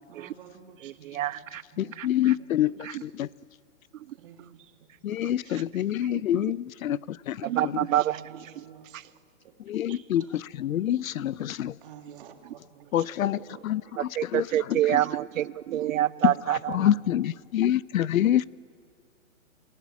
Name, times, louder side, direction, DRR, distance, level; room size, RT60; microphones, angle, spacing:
voice 1, 0.1-1.4 1.7-2.5 2.8-3.0 4.2-4.7 5.1-5.2 5.6-5.7 6.1-6.2 7.8-9.1 9.9-10.0 11.8-13.6 15.8-16.2 16.5-17.0, right 8 dB, 40° right, 5 dB, 2.0 m, -49 dB
voice 2, 0.8-1.6 2.0-2.1 7.4-8.2 14.2-16.8, right 13 dB, 75° right, 18 dB, 0.5 m, -26 dB
voice 3, 1.8-3.3 5.0-7.9 9.7-11.7 12.9-15.0 16.2-18.4, left 12 dB, 85° left, 22 dB, 0.6 m, -27 dB
29.0 x 15.5 x 9.3 m, 2.2 s
hypercardioid pair, 165°, 40 cm